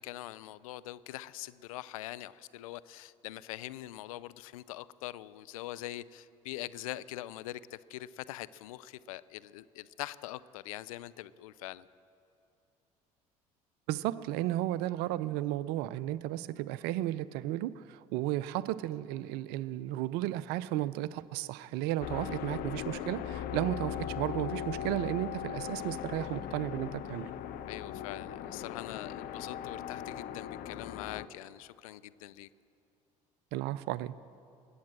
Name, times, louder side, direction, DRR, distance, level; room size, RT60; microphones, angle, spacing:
voice 1, 0.0-11.9 27.7-32.5, left 15 dB, 80° left, 16 dB, 0.4 m, -43 dB
voice 2, 13.9-27.3 33.5-34.2, right 14 dB, 65° right, 18 dB, 0.5 m, -34 dB
sound 1, 22.0-31.3, left 10 dB, 60° left, 0.8 m, -39 dB
19.5 x 8.7 x 7.5 m, 2.7 s
hypercardioid pair, 60°, 18 cm